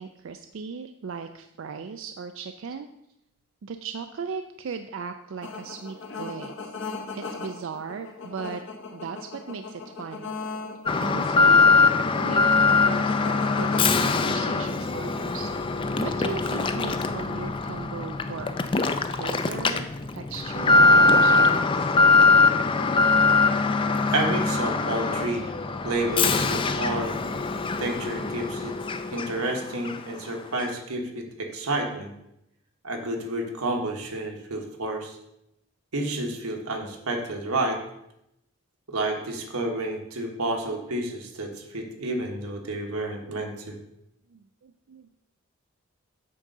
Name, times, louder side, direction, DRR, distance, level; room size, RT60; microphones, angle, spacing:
voice 1, 0.0-2.9 3.6-6.7 7.1-8.6 8.9-10.3 11.0-11.8 12.2-15.5 16.0-19.9 20.1-21.9 44.3-45.1, right 5 dB, 60° right, 7 dB, 0.4 m, -37 dB
sound 1, 5.4-13.8, left 4 dB, 60° left, 0.8 m, -38 dB
Alarm, 10.9-29.5 29.8-30.0 30.6-30.7, left 3 dB, 25° left, 0.4 m, -22 dB
voice 2, 24.1-25.5 25.8-27.2 27.8-28.8 29.1-32.1 32.8-35.2 35.9-37.8 38.9-43.8, right 2 dB, 90° right, 2 dB, 1.4 m, -30 dB
8.5 x 3.7 x 6.6 m, 0.82 s
head